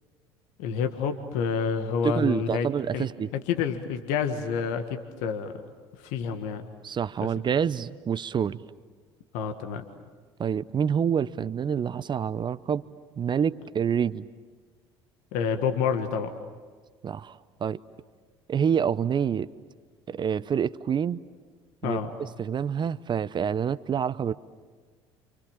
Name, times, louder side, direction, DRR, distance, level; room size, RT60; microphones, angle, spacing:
voice 1, 0.6-2.7 2.9-3.1 3.3-5.5 6.0-6.7 7.2-7.3 9.3-9.8 15.3-16.3 21.8-22.1, left 6 dB, 65° left, 7 dB, 1.7 m, -28 dB
voice 2, 2.0-3.3 6.8-8.6 10.4-12.8 13.2-14.3 17.0-17.8 18.5-19.5 20.1-21.2 21.8-24.3, right 7 dB, 35° right, 15 dB, 0.7 m, -27 dB
29.0 x 27.5 x 7.3 m, 1.5 s
hypercardioid pair, 65°, 14 cm